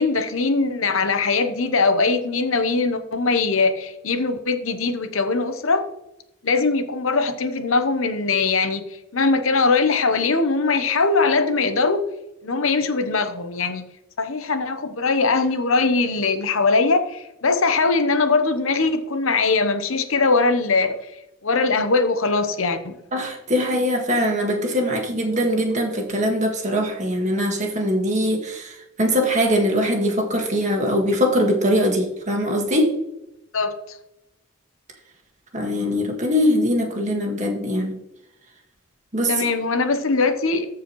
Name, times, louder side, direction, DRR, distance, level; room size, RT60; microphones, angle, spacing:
voice 1, 0.0-5.9 6.4-8.9 9.1-12.0 12.4-13.8 14.2-21.0 21.4-23.0 33.5-33.7 39.3-40.7, left 3 dB, 70° left, 8 dB, 0.9 m, -21 dB
voice 2, 23.1-32.9 35.5-38.0 39.1-39.3, equal, 35° right, 2 dB, 1.8 m, -22 dB
14.5 x 4.9 x 3.1 m, 0.86 s
head